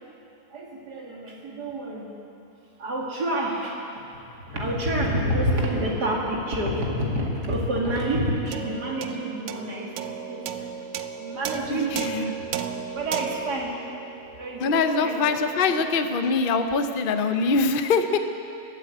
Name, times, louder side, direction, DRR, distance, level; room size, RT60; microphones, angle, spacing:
voice 1, 0.5-2.1 2.8-9.9 10.3-10.6 11.2-12.4 12.9-13.7 14.4-15.8, right 1 dB, 60° right, -2 dB, 2.9 m, -28 dB
sound 1, 8.5-15.1, right 8 dB, 80° right, 1.4 m, -35 dB
voice 2, 11.7-12.3 14.6-18.2, left 4 dB, 60° left, 7 dB, 0.5 m, -23 dB
21.0 x 8.5 x 8.0 m, 2.8 s
omnidirectional pair, 2.0 m